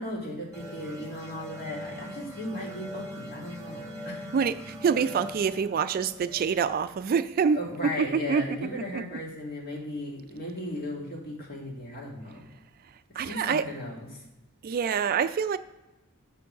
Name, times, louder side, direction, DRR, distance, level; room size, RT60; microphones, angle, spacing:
voice 1, 0.0-4.3 7.5-12.4 13.1-14.1, left 1 dB, 45° left, 2.2 m, -36 dB
sound 1, 0.5-7.8, equal, 15° right, 1.2 m, -42 dB
voice 2, 4.3-8.6 8.9-9.0 13.2-13.7 14.6-15.6, right 6 dB, 45° right, 0.3 m, -26 dB
7.0 x 5.3 x 6.1 m
head